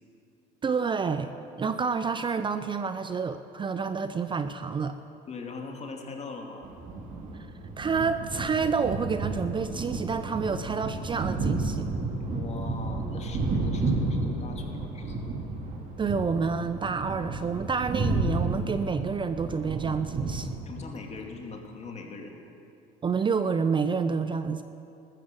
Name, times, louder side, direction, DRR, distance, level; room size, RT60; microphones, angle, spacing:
voice 1, 0.6-1.3 1.6-5.0 7.8-11.9 16.0-20.6 23.0-24.6, right 5 dB, 25° right, 10 dB, 0.6 m, -28 dB
voice 2, 5.3-6.8 12.3-15.3 20.7-22.3, left 4 dB, 35° left, 2 dB, 2.5 m, -41 dB
sound 1, 6.6-20.9, right 2 dB, 40° right, 3.0 m, -32 dB
13.5 x 13.5 x 7.4 m, 2.7 s
supercardioid pair, 90°, 19 cm